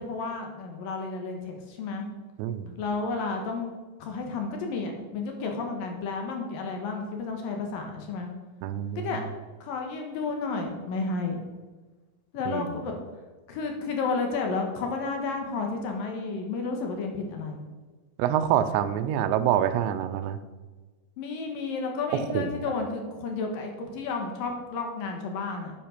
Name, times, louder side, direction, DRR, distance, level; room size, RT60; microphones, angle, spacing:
voice 1, 0.0-2.1 2.8-3.7 4.0-8.3 9.0-9.2 9.6-11.4 12.3-12.9 13.5-17.7 21.2-25.7, left 4 dB, 65° left, 3 dB, 2.7 m, -32 dB
voice 2, 2.4-2.7 8.6-9.2 12.5-12.7 18.2-20.4 22.1-22.5, right 10 dB, 85° right, 11 dB, 2.9 m, -26 dB
8.9 x 8.7 x 6.6 m, 1.3 s
omnidirectional pair, 5.1 m